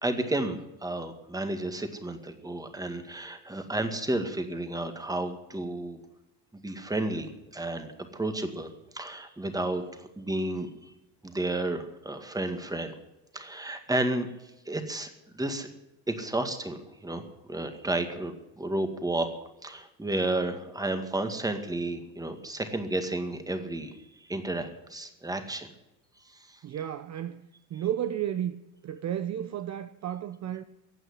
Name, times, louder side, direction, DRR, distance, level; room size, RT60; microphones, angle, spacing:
voice 1, 0.0-6.0 6.6-10.9 11.2-12.9 13.3-14.3 14.7-15.7 16.1-19.3 19.6-24.0 24.3-25.7 26.3-26.6, right 2 dB, 10° right, 2.0 m, -32 dB
voice 2, 26.6-28.6 28.8-30.6, right 10 dB, 40° right, 0.8 m, -33 dB
16.0 x 9.0 x 10.0 m
cardioid pair, 135°, 41 cm